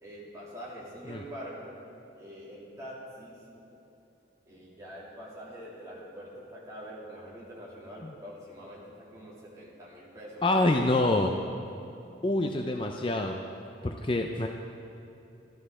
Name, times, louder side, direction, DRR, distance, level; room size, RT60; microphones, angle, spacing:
voice 1, 0.0-1.8 2.2-3.4 4.5-10.8, equal, 15° right, -7 dB, 2.9 m, -44 dB
voice 2, 10.4-11.3 12.2-13.4 13.8-14.5, left 2 dB, 25° left, 3 dB, 0.5 m, -26 dB
13.0 x 12.5 x 4.9 m, 2.9 s
head